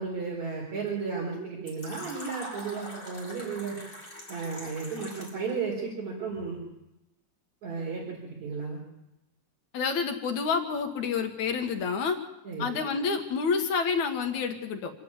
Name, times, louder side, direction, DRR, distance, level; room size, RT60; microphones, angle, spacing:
voice 1, 0.0-3.8 4.3-6.6 7.6-8.8 12.4-12.8, right 5 dB, 70° right, -3 dB, 5.7 m, -34 dB
Fill (with liquid), 1.7-5.5, equal, 15° left, 6.1 m, -43 dB
voice 2, 9.7-12.2 12.6-14.9, left 5 dB, 80° left, 5 dB, 3.0 m, -28 dB
26.0 x 10.5 x 9.7 m, 0.92 s
omnidirectional pair, 3.3 m